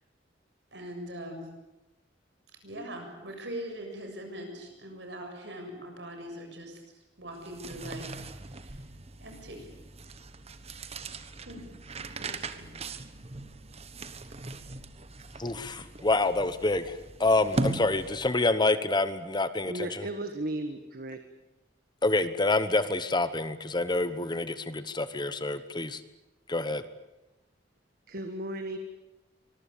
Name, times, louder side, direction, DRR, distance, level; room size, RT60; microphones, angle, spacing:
voice 1, 0.7-1.5 2.6-6.8 7.2-8.2 8.5-8.8 9.2-9.7 11.5-11.6 12.2-12.7, right 1 dB, 70° right, 4 dB, 7.2 m, -41 dB
sound 1, 7.3-18.5, right 2 dB, 35° right, 1.3 m, -39 dB
voice 2, 15.4-20.1 22.0-26.0 26.5-26.8, left 2 dB, 25° left, 12 dB, 1.1 m, -27 dB
voice 3, 19.6-21.2 28.1-28.8, right 1 dB, 55° right, 7 dB, 1.6 m, -35 dB
24.5 x 21.5 x 8.6 m, 1.0 s
head